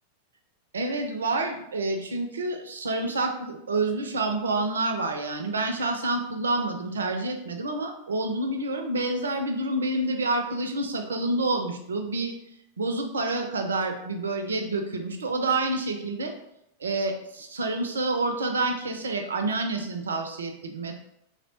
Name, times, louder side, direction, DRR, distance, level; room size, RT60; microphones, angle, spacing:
voice 1, 0.7-12.3 12.8-16.3 16.8-21.0, right 2 dB, 70° right, 5 dB, 0.4 m, -28 dB
2.7 x 2.0 x 3.0 m, 0.80 s
figure-of-eight pair, 90°, 0 cm